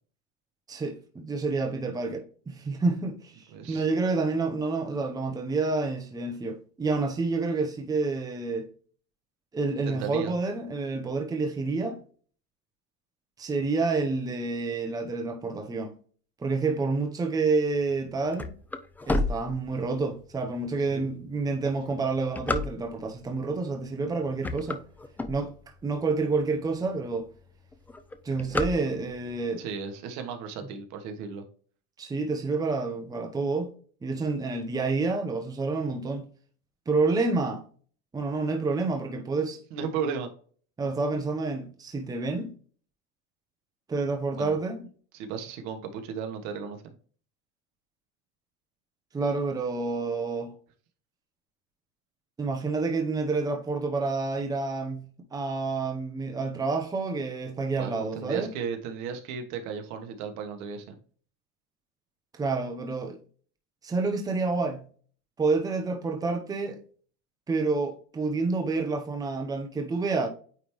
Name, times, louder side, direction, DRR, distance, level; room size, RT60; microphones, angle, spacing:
voice 1, 0.7-8.7 9.5-12.0 13.4-15.9 16.4-18.5 19.1-24.8 25.3-25.5 25.8-27.3 28.2-29.6 32.0-33.7 34.0-36.3 36.9-37.6 38.1-39.6 40.8-42.5 43.9-44.9 49.1-50.5 52.4-58.5 62.4-63.2 63.8-64.8 65.4-66.8 67.5-70.3, right 3 dB, 10° right, 0.9 m, -28 dB
voice 2, 3.5-3.8 9.8-10.3 20.9-21.0 29.6-31.4 39.7-40.3 44.3-44.6 45.1-46.9 57.8-61.0, right 6 dB, 60° right, 1.4 m, -35 dB
sound 1, 17.9-20.2 20.7-20.8 21.5-23.2 23.8-24.1 24.3-25.9 26.4-26.5 26.7-26.8 27.1-27.5 27.7-29.3, left 2 dB, 5° left, 0.3 m, -31 dB
9.1 x 3.4 x 3.1 m
cardioid pair, 150°, 30 cm